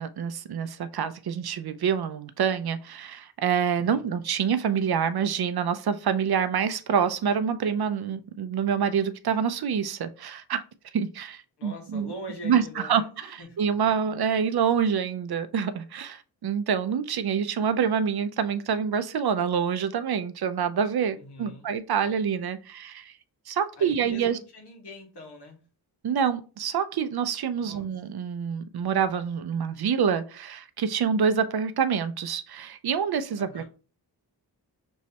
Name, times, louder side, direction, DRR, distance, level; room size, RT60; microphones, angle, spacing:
voice 1, 0.0-10.6 10.9-12.1 12.4-13.0 13.3-23.1 23.5-24.4 26.0-33.6, right 7 dB, 65° right, 0.5 m, -26 dB
voice 2, 11.6-13.6 21.1-21.7 23.8-25.6 27.5-27.9 33.4-33.6, equal, 75° left, 1.5 m, -43 dB
5.5 x 3.1 x 2.8 m
wide cardioid pair, 120°, 41 cm